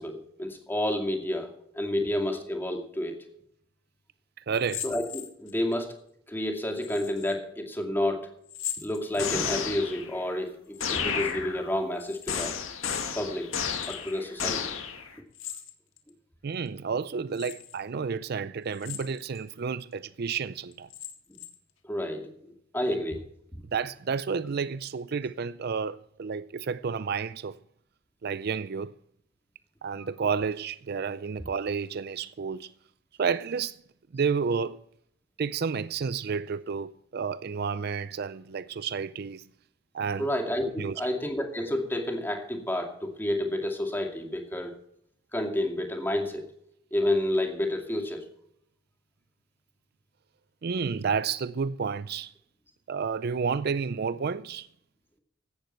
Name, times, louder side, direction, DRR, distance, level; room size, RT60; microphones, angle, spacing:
voice 1, 0.0-3.2 4.8-6.0 6.3-8.3 8.8-12.6 13.2-13.5 13.8-14.6 21.3-21.4 21.8-22.3 22.7-23.2 23.5-23.6 40.2-44.7 45.3-46.4 46.9-48.2, left 1 dB, 10° left, 2.4 m, -30 dB
sound 1, 4.5-5.8 6.8-7.4 8.4-9.6 10.6-11.4 11.6-12.6 13.6-14.2 15.3-16.1 16.7-16.8 17.3-17.8 18.7-19.4 19.9-20.0 20.7-21.7, left 11 dB, 70° left, 1.9 m, -41 dB
voice 2, 4.5-4.8 16.4-20.9 23.7-27.6 28.2-28.9 29.8-32.7 33.2-33.8 34.1-34.8 35.4-39.4 39.9-40.3 40.8-41.0 50.6-52.3 52.9-54.7, right 5 dB, 50° right, 0.4 m, -31 dB
sound 2, 9.2-10.2 10.8-11.8 12.3-15.1, left 6 dB, 85° left, 2.1 m, -32 dB
16.0 x 12.0 x 4.5 m
head